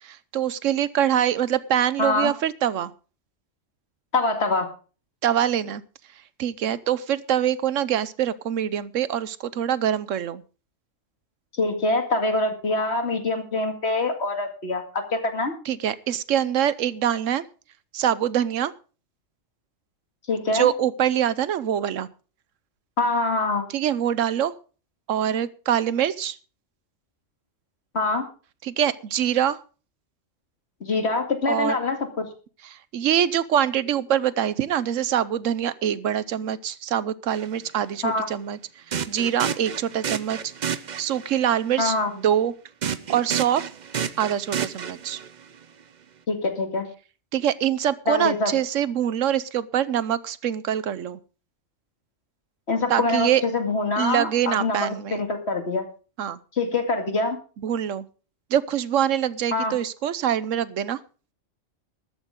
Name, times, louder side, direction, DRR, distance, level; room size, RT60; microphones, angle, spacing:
voice 1, 0.0-2.9 5.2-5.8 6.4-10.4 15.7-17.4 17.9-18.7 20.5-22.1 23.7-24.5 25.1-26.4 28.6-29.6 31.5-31.8 32.7-38.6 38.9-40.5 41.0-42.5 43.1-43.7 44.2-45.2 47.3-51.2 52.9-53.4 54.0-55.2 56.2-56.4 57.6-58.0 58.5-61.0, right 10 dB, 80° right, 17 dB, 1.1 m, -24 dB
voice 2, 2.0-2.3 4.1-4.7 11.6-15.5 20.3-20.7 23.0-23.7 27.9-28.2 30.8-32.3 38.0-38.3 41.8-42.1 46.3-46.9 48.1-48.5 52.7-55.8 56.6-57.4 59.5-59.8, left 3 dB, 55° left, 5 dB, 2.5 m, -24 dB
sound 1, 37.3-37.5 38.9-41.4 42.8-45.4, right 7 dB, 45° right, 0.7 m, -30 dB
13.5 x 13.0 x 3.7 m, 0.36 s
omnidirectional pair, 1.3 m